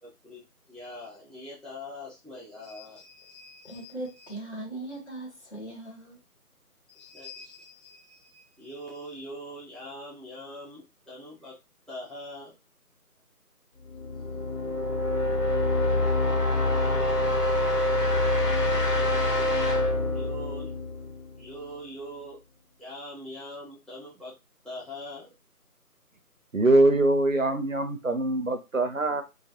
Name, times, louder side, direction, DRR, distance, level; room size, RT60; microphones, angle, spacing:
voice 1, 0.0-3.9 4.2-4.3 6.9-11.6 11.9-12.6 16.8-17.2 20.1-20.8 21.4-22.4 22.8-24.4 24.6-25.3, left 1 dB, ahead, 0.5 m, -43 dB
voice 2, 3.6-6.2, right 2 dB, 45° left, 1.0 m, -39 dB
sound 1, 13.9-21.7, left 2 dB, 85° left, 1.3 m, -26 dB
voice 3, 26.5-29.2, right 2 dB, 60° right, 0.5 m, -23 dB
2.3 x 2.2 x 2.6 m
figure-of-eight pair, 165°, 46 cm